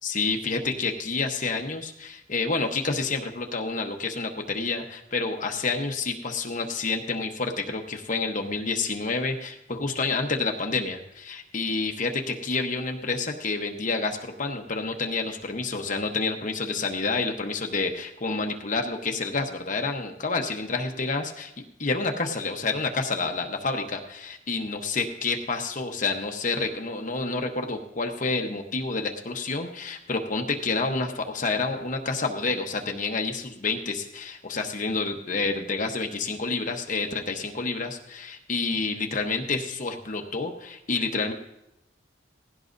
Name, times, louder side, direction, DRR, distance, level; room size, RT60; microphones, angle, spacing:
voice 1, 0.0-21.5 21.8-41.3, left 3 dB, 45° left, 3 dB, 0.9 m, -29 dB
18.5 x 16.0 x 2.6 m, 0.86 s
head